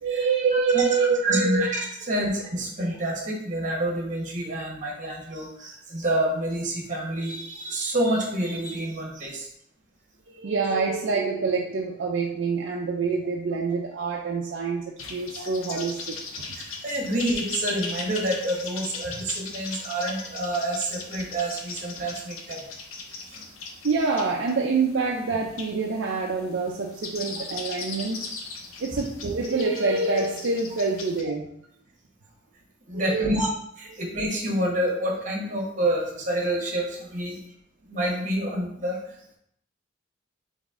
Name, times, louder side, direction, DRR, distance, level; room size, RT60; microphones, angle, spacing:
voice 1, 0.0-1.6 2.2-2.3 10.4-16.5 23.8-28.3 28.8-31.5 32.9-33.4, right 4 dB, 60° right, -1 dB, 0.5 m, -26 dB
voice 2, 1.2-9.5 15.4-15.5 16.6-22.6 23.1-23.4 28.9-29.0 32.9-33.5 33.8-37.4 37.9-39.0, right 1 dB, 40° right, -1 dB, 1.1 m, -28 dB
sound 1, 15.0-31.2, left 4 dB, 90° left, 0.7 m, -39 dB
3.9 x 3.5 x 3.6 m, 0.72 s
head